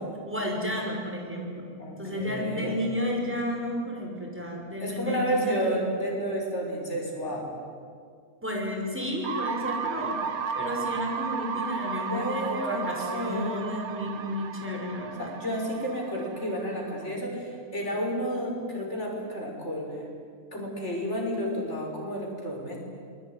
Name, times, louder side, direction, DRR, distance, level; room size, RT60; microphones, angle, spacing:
voice 1, 0.3-1.6 2.0-5.8 8.4-10.2 10.5-15.3, left 1 dB, 10° right, -1 dB, 6.0 m, -32 dB
voice 2, 1.8-2.8 4.8-7.5 12.1-13.7 15.2-20.1 20.5-22.8, equal, 50° left, 0 dB, 6.3 m, -31 dB
sound 1, 9.2-17.1, right 6 dB, 80° right, 1.7 m, -34 dB
27.5 x 21.5 x 9.8 m, 2.2 s
omnidirectional pair, 1.5 m